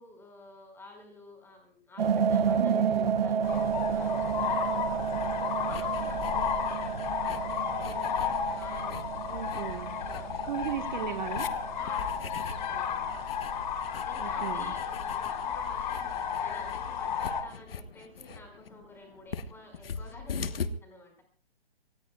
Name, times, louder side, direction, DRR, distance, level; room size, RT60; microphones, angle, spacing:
voice 1, 0.0-4.2 4.6-5.0 5.7-9.1 10.0-10.3 11.8-13.1 14.1-21.2, left 1 dB, 5° left, 3 dB, 5.8 m, -51 dB
sound 1, 2.0-13.8, right 7 dB, 65° right, 1.2 m, -32 dB
voice 2, 2.6-3.1 9.3-9.9 10.5-11.5 14.2-14.7, right 9 dB, 45° right, 6 dB, 1.7 m, -35 dB
sound 2, 3.4-17.4, left 7 dB, 45° left, 3.5 m, -33 dB
sound 3, 5.1-20.7, left 5 dB, 65° left, 1.4 m, -43 dB
28.0 x 19.5 x 2.4 m, 0.36 s
hypercardioid pair, 145°, 32 cm